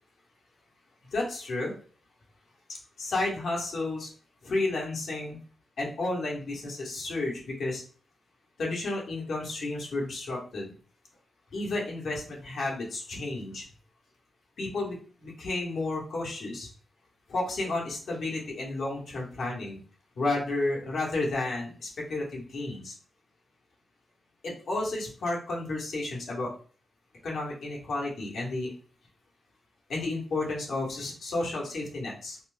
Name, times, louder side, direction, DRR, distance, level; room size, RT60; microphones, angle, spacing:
voice 1, 1.1-1.7 2.7-4.1 4.4-5.4 5.8-7.8 8.6-10.7 11.5-13.6 14.6-16.7 17.3-19.8 20.2-22.9 24.4-26.5 27.2-28.7 29.9-32.4, left 2 dB, 70° left, -3 dB, 1.2 m, -32 dB
4.2 x 2.0 x 2.5 m, 0.41 s
cardioid pair, 85°, 0 cm